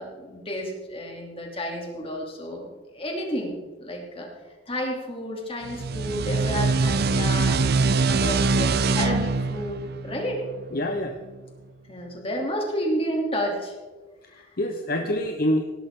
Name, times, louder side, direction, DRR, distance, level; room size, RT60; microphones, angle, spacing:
voice 1, 0.0-2.7 2.9-4.3 4.7-7.6 8.1-10.4 11.9-13.7 14.3-14.4, equal, 30° left, 0 dB, 2.9 m, -31 dB
sound 1, 5.6-11.0, right 3 dB, 50° right, 0.6 m, -23 dB
voice 2, 10.7-11.2 14.3-15.7, left 1 dB, 50° left, 5 dB, 0.9 m, -26 dB
17.0 x 12.0 x 3.7 m, 1.3 s
head